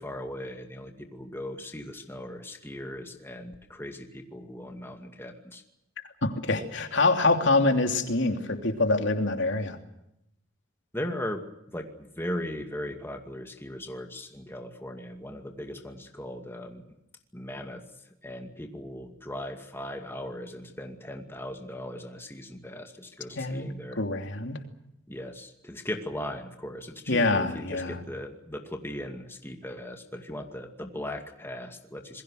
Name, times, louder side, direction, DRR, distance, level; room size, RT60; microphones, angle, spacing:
voice 1, 0.0-5.6 10.9-16.8 17.3-17.8 18.2-24.0 25.1-32.2, left 1 dB, 10° left, 4 dB, 2.4 m, -38 dB
voice 2, 6.2-9.8 23.4-24.6 27.1-28.0, left 2 dB, 65° left, 5 dB, 3.0 m, -25 dB
28.0 x 22.0 x 6.5 m, 0.82 s
head